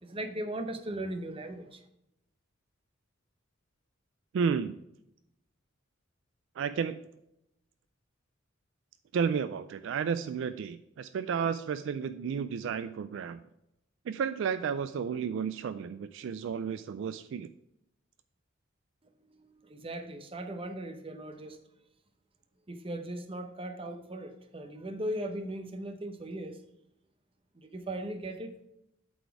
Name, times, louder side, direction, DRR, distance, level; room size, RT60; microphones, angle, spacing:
voice 1, 0.0-1.8 19.3-21.6 22.7-26.6 27.6-28.5, right 1 dB, 25° right, 7 dB, 0.7 m, -38 dB
voice 2, 4.3-4.7 6.6-7.0 9.1-13.4 14.1-17.5, right 6 dB, 65° right, 12 dB, 0.3 m, -32 dB
8.1 x 4.2 x 4.7 m, 0.81 s
head